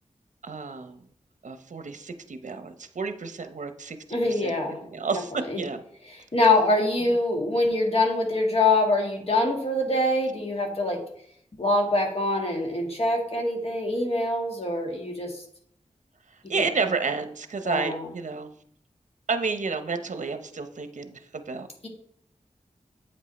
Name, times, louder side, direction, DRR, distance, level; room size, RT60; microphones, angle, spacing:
voice 1, 0.4-1.0 1.4-4.0 4.2-5.8 16.5-18.5 19.3-21.7, right 4 dB, 70° right, 8 dB, 0.7 m, -31 dB
voice 2, 4.1-4.8 5.5-5.6 6.3-11.0 11.5-15.4 17.6-18.1 21.8-21.9, left 2 dB, 50° left, 1 dB, 1.8 m, -24 dB
8.3 x 5.4 x 4.1 m, 0.66 s
wide cardioid pair, 70°, 13 cm